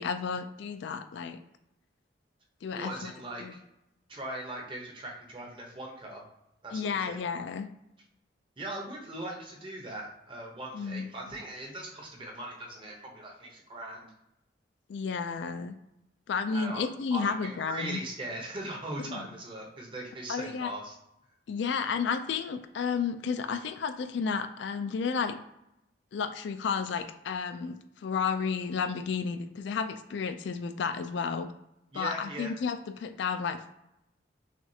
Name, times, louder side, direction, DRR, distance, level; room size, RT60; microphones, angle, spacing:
voice 1, 0.0-1.4 2.6-3.1 3.4-3.5 6.7-7.7 10.7-11.1 14.9-15.7 16.3-18.0 19.1-19.2 20.3-20.7 21.5-25.4 26.1-31.5 31.9-33.7, left 5 dB, 70° left, 9 dB, 0.3 m, -32 dB
voice 2, 2.7-3.6 4.1-6.2 6.6-7.2 8.6-14.1 16.5-20.9 31.9-32.5, right 1 dB, 25° right, 0 dB, 0.8 m, -40 dB
5.8 x 2.4 x 2.7 m, 0.84 s
head